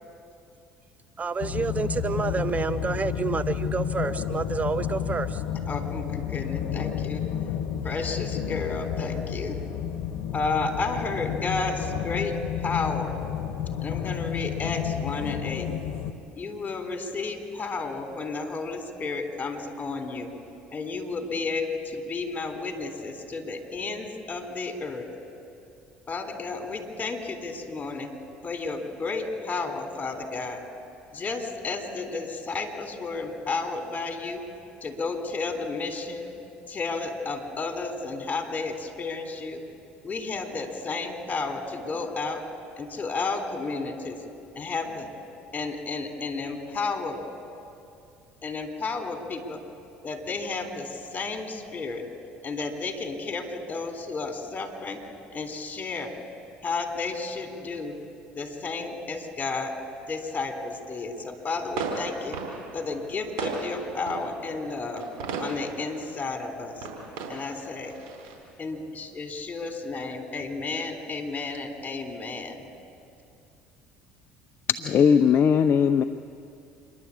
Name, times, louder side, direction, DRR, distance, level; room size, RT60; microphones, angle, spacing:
voice 1, 1.2-5.4, right 5 dB, 30° right, 14 dB, 0.6 m, -29 dB
sound 1, 1.4-16.1, left 9 dB, 65° left, 1.2 m, -31 dB
voice 2, 5.7-7.2 7.8-9.6 10.3-13.2 13.8-15.7 16.4-20.3 20.7-25.1 26.1-28.1 28.4-30.6 31.1-34.4 34.8-36.3 36.7-39.6 40.0-42.4 42.8-44.2 44.5-45.1 45.5-47.2 48.4-49.6 50.0-52.0 52.4-55.0 55.3-56.1 56.6-58.0 58.3-59.8 60.1-62.4 62.7-65.0 65.4-66.9 67.3-67.9 68.6-72.6, left 3 dB, 30° left, 5 dB, 3.7 m, -32 dB
sound 2, 61.5-68.4, right 4 dB, 75° right, 4.4 m, -36 dB
voice 3, 74.7-76.0, left 7 dB, 50° left, 9 dB, 0.6 m, -19 dB
27.5 x 12.0 x 8.5 m, 2.6 s
hypercardioid pair, 70°, 5 cm